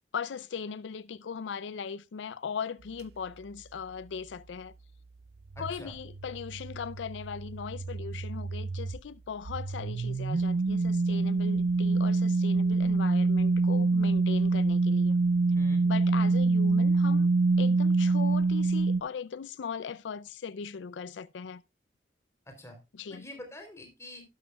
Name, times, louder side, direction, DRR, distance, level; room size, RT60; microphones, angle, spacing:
voice 1, 0.1-4.7 5.6-15.2 15.8-17.3 17.6-21.6 22.9-23.3, left 6 dB, 85° left, 0.4 m, -39 dB
voice 2, 5.5-5.9 15.5-15.8 22.4-22.8 23.1-24.2, left 1 dB, 15° left, 3.3 m, -46 dB
sound 1, 5.5-9.0 9.5-19.0, right 3 dB, 60° right, 0.4 m, -26 dB
11.5 x 11.5 x 2.3 m
head